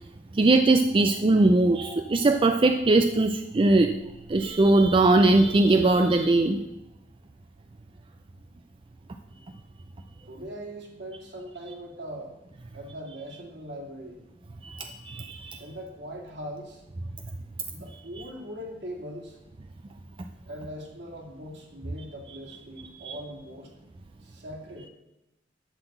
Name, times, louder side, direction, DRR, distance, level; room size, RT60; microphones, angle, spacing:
voice 1, 0.3-3.9 4.3-6.6 14.6-15.6 23.0-23.2, right 2 dB, 30° right, 6 dB, 0.4 m, -20 dB
voice 2, 10.2-12.3 12.7-14.2 15.6-16.8 17.7-19.4 20.5-23.7 24.2-24.9, equal, 65° right, -1 dB, 2.5 m, -40 dB
11.5 x 4.0 x 7.8 m, 0.93 s
head